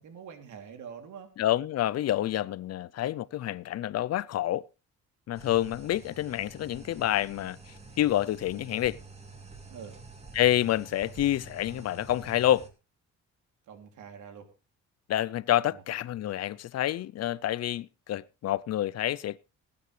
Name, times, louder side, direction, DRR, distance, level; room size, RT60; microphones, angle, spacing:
voice 1, 0.0-1.3 9.7-9.9 13.7-14.5 15.6-15.8, right 7 dB, 75° right, 2.9 m, -45 dB
voice 2, 1.4-4.7 5.3-9.0 10.3-12.7 15.1-19.4, left 13 dB, 55° left, 0.5 m, -28 dB
sound 1, 5.3-12.7, right 3 dB, 20° right, 2.9 m, -48 dB
19.5 x 9.6 x 3.2 m
cardioid pair, 90°, 30 cm